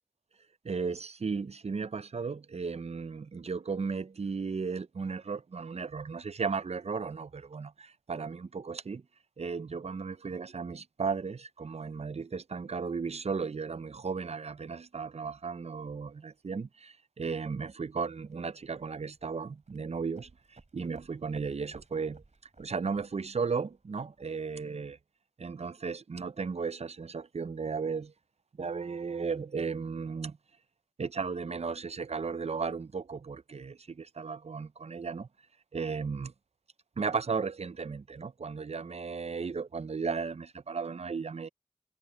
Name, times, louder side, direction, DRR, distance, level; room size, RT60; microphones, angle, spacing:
voice 1, 0.6-9.0 9.4-22.2 22.6-25.0 25.4-28.1 28.6-30.4 31.0-35.3 35.7-36.3 37.0-41.5, right 5 dB, 60° right, 0.4 m, -35 dB
sound 1, 17.9-24.8, right 3 dB, 80° right, 3.2 m, -60 dB
wide cardioid pair, 55°, 12 cm